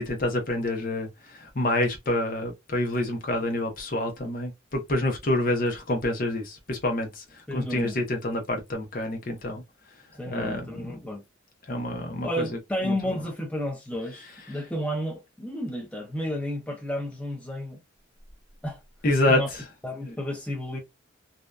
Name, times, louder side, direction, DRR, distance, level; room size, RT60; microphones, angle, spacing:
voice 1, 0.0-7.2 7.5-9.6 10.3-11.0 11.7-12.9 19.0-19.4, left 1 dB, 45° left, 0.7 m, -27 dB
voice 2, 7.5-8.0 10.1-11.2 12.2-17.8 18.6-18.8 19.3-19.5 19.8-20.8, equal, 5° left, 0.6 m, -32 dB
2.6 x 2.1 x 2.2 m
head